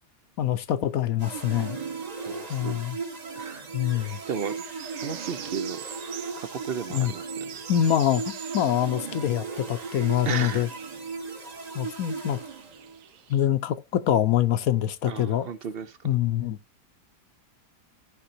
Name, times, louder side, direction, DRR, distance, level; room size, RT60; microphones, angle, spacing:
voice 1, 0.4-1.8 2.5-3.0 3.7-4.2 6.9-7.1 7.7-10.7 11.7-12.4 13.3-15.5 16.0-16.6, left 11 dB, 65° left, 1.0 m, -25 dB
sound 1, 1.2-13.1, right 4 dB, 30° right, 1.0 m, -37 dB
voice 2, 2.3-2.8 3.3-3.7 4.3-4.5 5.0-5.8 6.4-7.6 10.3-10.7 15.0-16.0, right 7 dB, 60° right, 0.6 m, -34 dB
sound 2, 3.8-13.5, right 9 dB, 80° right, 1.3 m, -45 dB
15.5 x 5.2 x 2.8 m
omnidirectional pair, 1.7 m